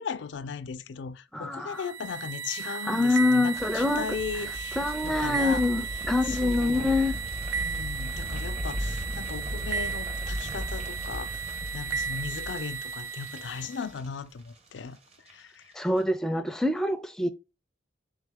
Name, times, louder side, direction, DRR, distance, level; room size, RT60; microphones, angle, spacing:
voice 1, 0.0-5.7 6.2-7.0 7.5-11.4 11.7-15.0 15.3-15.9, left 6 dB, 70° left, 0.4 m, -37 dB
voice 2, 1.3-1.8 2.7-4.1 4.8-7.1 15.8-17.3, left 2 dB, 5° left, 0.4 m, -25 dB
sound 1, 1.8-13.9, right 6 dB, 80° right, 0.3 m, -35 dB
sound 2, 3.5-14.7 14.9-15.3 15.6-15.7, equal, 35° right, 0.7 m, -37 dB
3.6 x 3.5 x 3.4 m
head